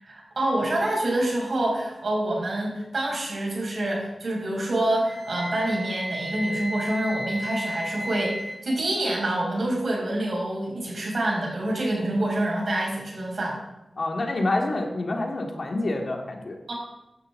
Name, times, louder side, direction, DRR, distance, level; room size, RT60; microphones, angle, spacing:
voice 1, 0.0-13.6 16.7-16.8, right 1 dB, 65° right, -2 dB, 5.8 m, -27 dB
Wind instrument woodwind instrument, 5.0-8.6, equal, 5° right, 3.8 m, -33 dB
voice 2, 14.0-16.6, left 2 dB, 55° left, 2 dB, 2.2 m, -27 dB
16.0 x 11.5 x 3.8 m, 0.95 s
wide cardioid pair, 80°, 0 cm